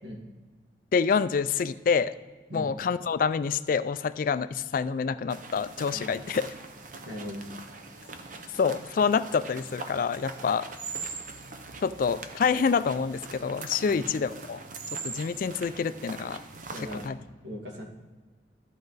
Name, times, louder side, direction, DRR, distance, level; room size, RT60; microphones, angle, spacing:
voice 1, 0.9-2.1 2.5-6.5 8.6-10.7 11.8-14.6 15.0-16.4 16.9-17.2, left 5 dB, 50° left, 14 dB, 0.3 m, -27 dB
sound 1, 5.3-17.1, right 4 dB, 45° right, 0.7 m, -42 dB
voice 2, 5.9-6.3 7.0-7.4 13.8-14.0 16.7-17.1 17.4-17.8, equal, 75° right, 0 dB, 1.9 m, -39 dB
13.5 x 5.0 x 4.0 m, 1.4 s
head